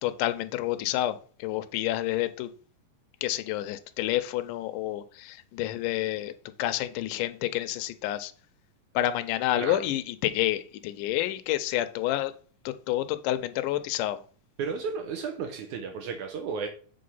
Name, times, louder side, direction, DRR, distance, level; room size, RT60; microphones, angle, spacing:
voice 1, 0.0-2.5 3.2-6.3 6.6-8.3 9.0-12.3 12.7-14.2, left 14 dB, 80° left, 2.1 m, -29 dB
voice 2, 14.6-16.7, right 5 dB, 75° right, 2.1 m, -33 dB
7.7 x 3.5 x 5.5 m
omnidirectional pair, 3.8 m